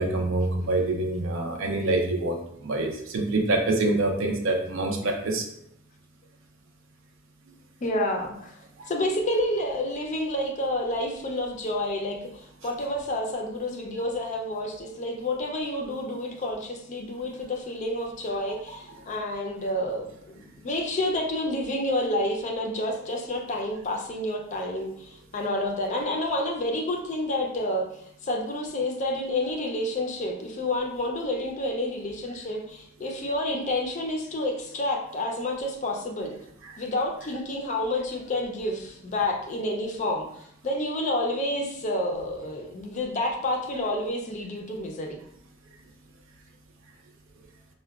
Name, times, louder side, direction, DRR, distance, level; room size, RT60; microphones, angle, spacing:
voice 1, 0.0-2.4 2.6-5.4 8.8-8.9, right 2 dB, 70° right, 2 dB, 0.5 m, -26 dB
voice 2, 7.8-8.6 8.9-27.9 28.2-36.3 36.8-40.3 40.6-45.2, left 1 dB, 35° left, 1 dB, 0.4 m, -29 dB
4.5 x 2.1 x 2.3 m, 0.73 s
head